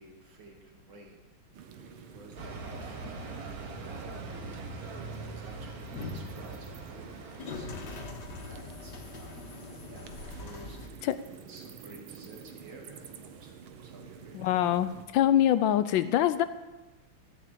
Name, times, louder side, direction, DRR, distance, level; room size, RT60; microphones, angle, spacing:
voice 1, 0.0-1.3 1.8-8.1 8.4-9.6 9.9-14.5, right 2 dB, 70° right, 1 dB, 2.9 m, -53 dB
sound 1, 1.5-15.0, right 7 dB, 85° right, 1.8 m, -48 dB
sound 2, 2.4-7.7, right 2 dB, 50° right, 1.7 m, -42 dB
sound 3, 2.5-10.9, left 3 dB, 55° left, 2.0 m, -44 dB
voice 2, 14.3-16.4, left 11 dB, 75° left, 13 dB, 1.2 m, -24 dB
14.0 x 7.5 x 8.3 m, 1.1 s
omnidirectional pair, 2.3 m